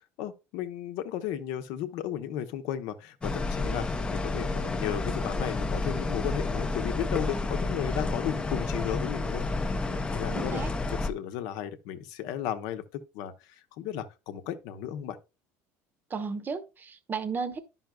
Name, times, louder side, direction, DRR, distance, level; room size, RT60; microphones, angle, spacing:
voice 1, 0.2-12.8 13.1-15.2, left 10 dB, 70° left, 0.8 m, -35 dB
sound 1, 3.2-11.1, left 3 dB, 15° left, 0.5 m, -30 dB
voice 2, 10.3-10.7 16.1-17.6, right 5 dB, 25° right, 0.8 m, -34 dB
10.5 x 5.6 x 2.2 m
supercardioid pair, 110°, 7 cm